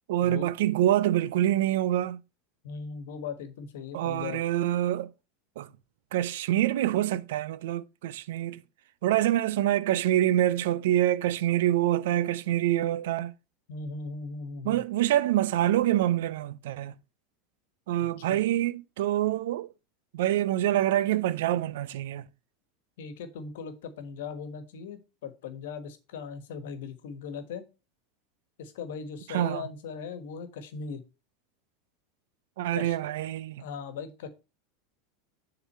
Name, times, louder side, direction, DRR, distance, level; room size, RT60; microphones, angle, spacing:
voice 1, 0.1-2.2 3.9-5.1 5.6-5.7 6.1-8.6 9.0-13.3 14.6-16.9 17.9-19.7 20.1-22.2 29.3-29.7 32.6-33.7, right 13 dB, 75° right, 0.5 m, -26 dB
voice 2, 2.6-4.4 13.7-14.8 18.0-18.4 23.0-27.6 28.6-31.0 32.7-33.0 33.6-34.3, left 5 dB, 75° left, 1.3 m, -39 dB
7.1 x 3.9 x 5.5 m
hypercardioid pair, 105°, 0 cm